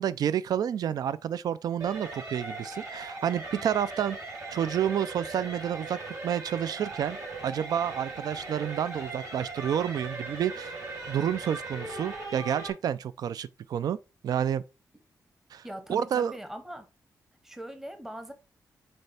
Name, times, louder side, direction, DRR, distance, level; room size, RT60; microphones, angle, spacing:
voice 1, 0.0-4.2 4.5-6.0 6.2-7.2 7.4-10.8 11.1-14.6 15.5-16.3, right 9 dB, 75° right, 0.3 m, -29 dB
sound 1, 1.8-12.7, right 3 dB, 55° right, 2.9 m, -39 dB
voice 2, 15.6-16.9 17.4-18.3, right 1 dB, 5° right, 0.8 m, -41 dB
6.5 x 4.4 x 3.4 m
wide cardioid pair, 125°, 7 cm